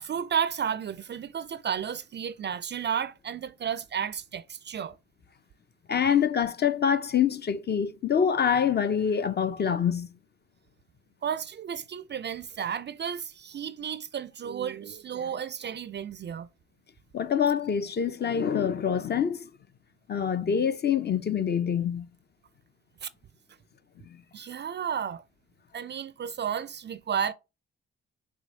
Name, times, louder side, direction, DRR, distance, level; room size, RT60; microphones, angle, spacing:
voice 1, 0.0-4.9 11.2-16.5 23.0-23.1 24.3-25.2 25.7-27.3, right 8 dB, 35° right, 0.4 m, -32 dB
voice 2, 5.9-10.1 17.1-19.5 20.1-22.1, left 7 dB, 30° left, 0.5 m, -25 dB
6.1 x 3.1 x 2.8 m
hypercardioid pair, 40°, 33 cm